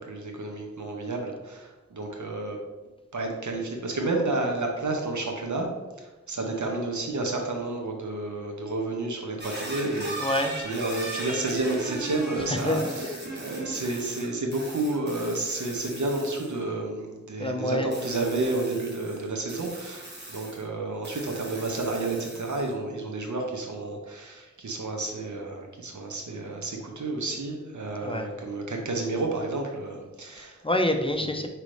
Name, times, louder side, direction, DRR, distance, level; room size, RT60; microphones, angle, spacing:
voice 1, 0.0-2.6 3.1-5.7 6.0-10.1 10.6-30.6, right 2 dB, 80° right, 1 dB, 0.9 m, -31 dB
sound 1, 9.4-16.6 17.9-20.6 21.0-22.7, right 2 dB, 35° right, 1.4 m, -38 dB
voice 2, 10.2-10.5 12.5-13.2 17.4-17.9 28.0-28.3 30.4-31.5, left 1 dB, 20° left, 4 dB, 0.4 m, -27 dB
5.1 x 3.0 x 3.2 m, 1.2 s
wide cardioid pair, 55°, 29 cm